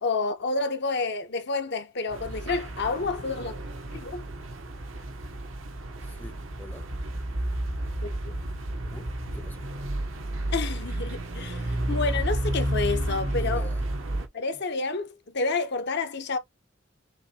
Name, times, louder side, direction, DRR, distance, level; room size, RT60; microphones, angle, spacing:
voice 1, 0.0-3.6 3.9-4.2 8.0-8.4 10.5-13.7 14.3-16.4, left 3 dB, 55° left, 0.9 m, -29 dB
sound 1, 2.1-14.3, right 1 dB, 80° right, 1.2 m, -31 dB
voice 2, 6.0-6.8 8.9-9.7 13.2-13.9, left 1 dB, 10° left, 0.7 m, -45 dB
6.4 x 2.7 x 2.9 m
head